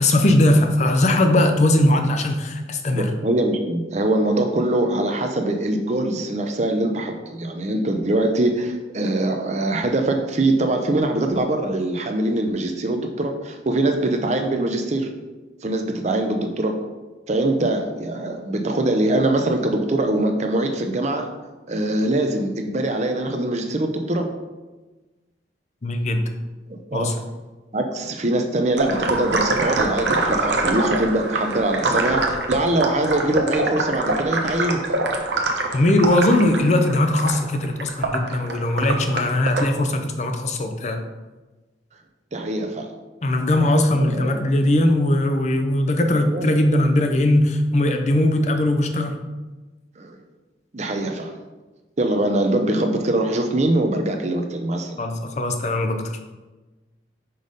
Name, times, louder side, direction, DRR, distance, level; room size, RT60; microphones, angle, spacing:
voice 1, 0.0-3.1 25.8-26.2 26.9-27.1 35.7-41.0 43.2-49.1 55.0-56.2, left 1 dB, 40° left, 5 dB, 0.6 m, -19 dB
voice 2, 2.9-15.1 15.6-16.8 17.3-21.3 21.7-24.3 26.7-27.1 27.7-34.8 42.3-42.9 44.0-44.5 46.2-46.5 50.0-50.2 50.7-51.4 52.0-55.0, right 1 dB, 40° right, 5 dB, 0.6 m, -23 dB
sound 1, 28.8-39.7, right 2 dB, 80° right, 0.8 m, -24 dB
5.5 x 4.0 x 5.1 m, 1.2 s
head